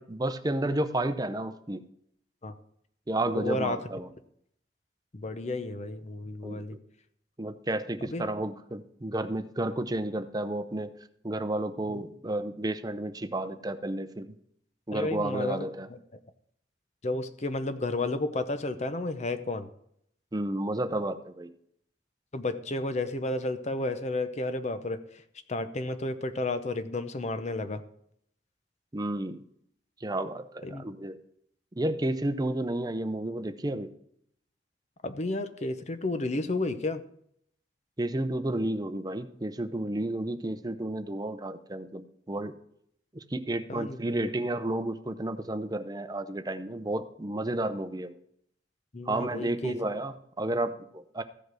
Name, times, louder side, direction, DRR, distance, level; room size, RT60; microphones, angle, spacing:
voice 1, 0.0-1.8 3.1-4.1 6.4-6.6 7.4-10.9 11.2-14.3 14.9-15.9 20.3-21.5 28.9-29.4 30.0-31.2 31.8-33.9 38.0-42.5 43.1-48.2 49.1-51.2, right 1 dB, 20° right, 10 dB, 0.7 m, -31 dB
voice 2, 3.3-3.8 5.1-6.8 8.1-8.3 11.9-12.0 14.9-16.0 17.0-19.7 22.3-25.2 25.5-27.8 30.6-30.9 35.0-37.0 43.7-44.0 48.9-49.7, left 2 dB, 40° left, 10 dB, 0.7 m, -32 dB
14.5 x 5.2 x 6.1 m, 0.70 s
head